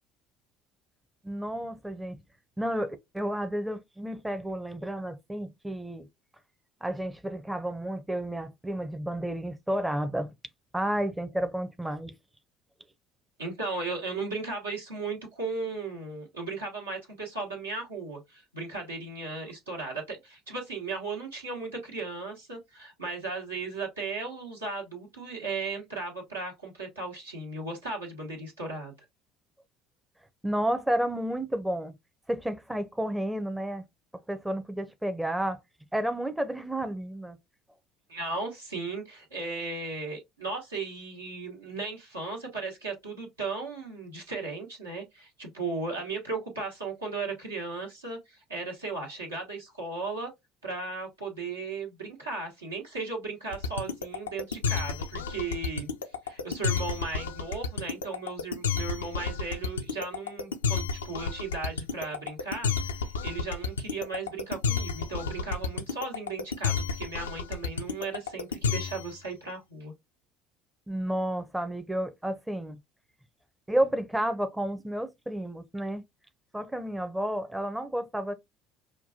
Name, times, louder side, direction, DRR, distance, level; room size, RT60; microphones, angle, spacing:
voice 1, 1.2-2.2 2.6-6.1 6.8-10.3 10.7-12.1 30.4-31.9 32.3-33.8 34.3-35.6 35.9-37.4 70.9-72.8 73.7-76.0 76.5-78.3, right 1 dB, 10° right, 0.6 m, -31 dB
voice 2, 13.4-29.0 38.1-50.3 50.6-55.9 56.2-69.9, right 3 dB, 85° right, 1.3 m, -36 dB
sound 1, 53.5-69.2, left 6 dB, 80° left, 0.4 m, -30 dB
5.7 x 2.2 x 2.7 m
figure-of-eight pair, 60°, 0 cm